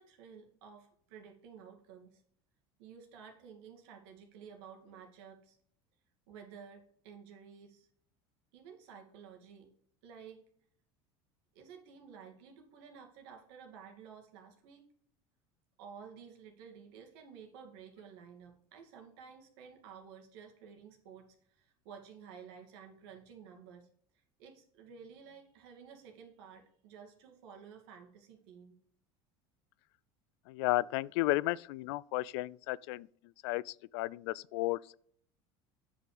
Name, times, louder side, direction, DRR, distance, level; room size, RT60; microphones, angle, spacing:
voice 1, 0.0-2.2 2.8-5.6 6.3-7.9 8.5-9.7 10.0-10.5 11.5-14.9 15.8-28.7, right 7 dB, 75° right, 2.5 m, -53 dB
voice 2, 30.5-33.1 33.4-34.9, left 18 dB, 75° left, 0.4 m, -33 dB
9.4 x 5.9 x 5.1 m
supercardioid pair, 95°, 14 cm